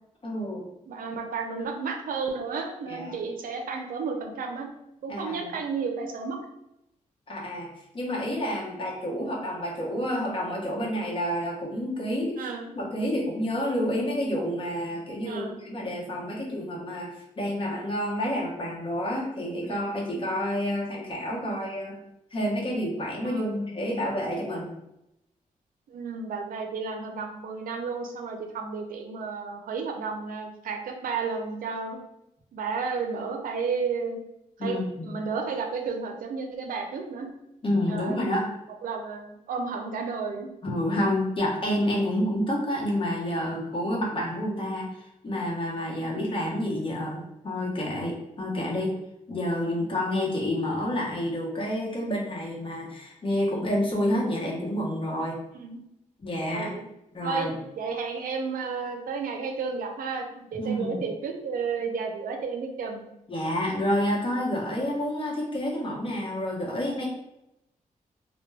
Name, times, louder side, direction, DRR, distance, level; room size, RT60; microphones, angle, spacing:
voice 1, 0.2-0.7 2.9-3.2 5.1-5.5 7.3-7.7 7.9-12.5 12.8-22.0 22.3-24.7 34.6-35.1 37.6-38.5 40.6-48.9 49.3-55.3 56.2-56.7 57.1-57.6 60.5-61.0 63.3-67.1, left 1 dB, 40° left, -3 dB, 0.8 m, -29 dB
voice 2, 0.9-4.7 5.0-6.4 12.4-12.7 15.2-15.6 19.6-19.8 21.5-21.6 23.3-23.6 25.9-32.0 32.5-34.2 34.6-37.3 37.9-38.4 38.8-40.5 46.0-46.1 48.5-48.6 55.5-55.8 56.5-56.8 57.2-57.5 57.8-63.1, right 5 dB, 80° right, 3 dB, 0.4 m, -32 dB
2.2 x 2.1 x 3.2 m, 0.86 s
cardioid pair, 85°, 14 cm